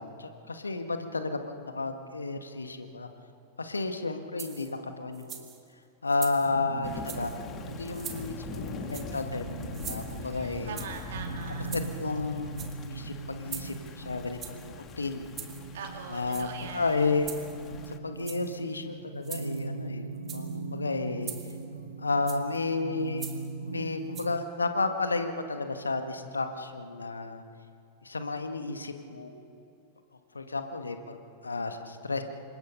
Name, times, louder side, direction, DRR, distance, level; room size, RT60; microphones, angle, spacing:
voice 1, 0.0-3.1 3.6-5.6 6.0-7.4 7.7-10.8 11.7-12.6 12.9-15.3 16.1-17.3 17.9-21.3 22.0-23.3 23.7-27.4 28.0-29.6 30.3-31.2 31.4-32.2, left 3 dB, 80° left, 7 dB, 1.8 m, -32 dB
sound 1, 4.4-4.8 5.1-5.6 6.1-6.5 7.0-7.4 7.9-8.3 8.9-9.3 9.7-10.3 10.8-11.1 11.6-12.1 12.4-12.9 13.5-13.9 14.4-14.7 15.3-15.7 16.2-16.7 17.2-17.7 18.2-18.6 19.2-19.7 20.2-20.6 21.2-21.6 22.3-22.6 23.2-23.5 24.1-24.3, right 9 dB, 30° right, 2.8 m, -43 dB
sound 2, 6.4-24.4, right 3 dB, 80° right, 1.3 m, -40 dB
Thunder / Rain, 6.8-18.0, left 6 dB, 30° left, 1.8 m, -44 dB
voice 2, 10.2-11.7 15.7-17.0, right 6 dB, 60° right, 3 dB, 3.3 m, -42 dB
28.5 x 25.5 x 5.5 m, 2.5 s
figure-of-eight pair, 90°, 0 cm